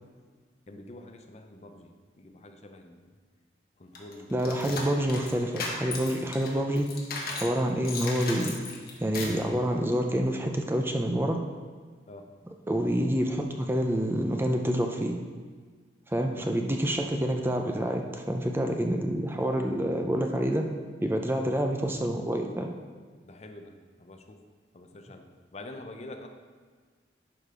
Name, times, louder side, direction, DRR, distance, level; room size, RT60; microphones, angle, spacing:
voice 1, 0.7-3.1 3.8-4.6 6.1-6.2 12.1-12.3 16.2-16.5 21.5-21.6 23.1-24.4 24.7-25.3 25.5-26.3, left 2 dB, 35° left, 5 dB, 0.5 m, -46 dB
sound 1, 3.9-7.5 7.8-9.4, left 3 dB, 55° left, 1.3 m, -36 dB
voice 2, 4.3-6.9 7.4-8.5 9.0-11.4 12.7-15.2 16.1-20.7 21.0-22.7, equal, 15° right, 3 dB, 0.5 m, -27 dB
11.0 x 5.0 x 3.7 m, 1.5 s
head